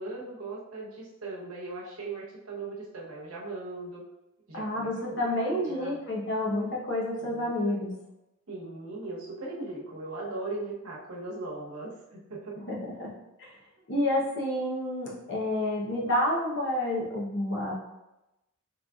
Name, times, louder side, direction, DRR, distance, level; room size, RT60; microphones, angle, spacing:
voice 1, 0.0-4.0 4.5-4.9 5.2-5.4 5.7-6.0 7.2-7.8 8.5-12.6, right 2 dB, 85° right, -3 dB, 1.0 m, -39 dB
voice 2, 4.5-7.9 12.7-13.1 13.4-13.5 13.9-17.7, left 1 dB, 55° left, -3 dB, 0.9 m, -29 dB
3.9 x 3.2 x 2.3 m, 0.95 s
head